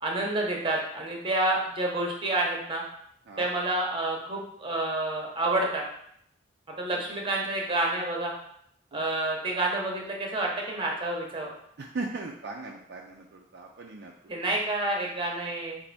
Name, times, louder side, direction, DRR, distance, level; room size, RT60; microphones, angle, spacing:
voice 1, 0.0-2.8 3.4-5.8 6.8-8.3 8.9-11.5 14.3-15.8, right 2 dB, 25° right, -1 dB, 0.8 m, -29 dB
voice 2, 11.8-14.1, right 3 dB, 55° right, 0 dB, 0.4 m, -38 dB
4.3 x 2.6 x 4.0 m, 0.71 s
head